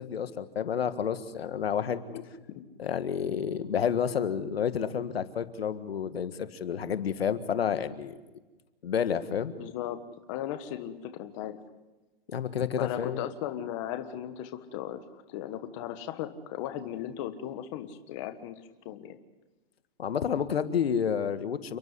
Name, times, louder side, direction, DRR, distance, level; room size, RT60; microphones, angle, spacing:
voice 1, 0.0-2.1 2.8-8.1 8.8-9.5 12.3-13.3 20.0-21.8, left 8 dB, 85° left, 11 dB, 1.7 m, -30 dB
voice 2, 9.6-10.0 10.3-11.6 12.8-18.6 18.8-19.2, left 11 dB, 30° left, 8 dB, 1.5 m, -37 dB
29.5 x 11.5 x 9.5 m, 1.1 s
hypercardioid pair, 155°, 30 cm